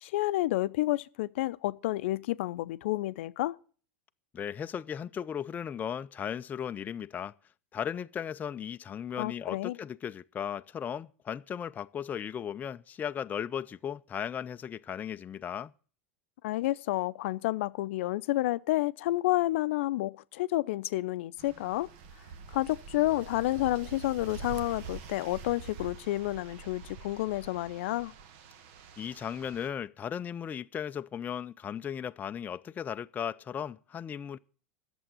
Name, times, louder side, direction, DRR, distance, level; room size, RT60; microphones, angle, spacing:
voice 1, 0.0-3.6 9.2-9.8 16.4-21.9 22.5-28.1, left 17 dB, 70° left, 0.6 m, -30 dB
voice 2, 4.3-7.3 7.7-15.7 29.0-34.4, left 8 dB, 25° left, 0.5 m, -36 dB
sound 1, 21.4-29.7, right 5 dB, 60° right, 1.2 m, -46 dB
11.0 x 7.1 x 9.0 m
hypercardioid pair, 95°, 7 cm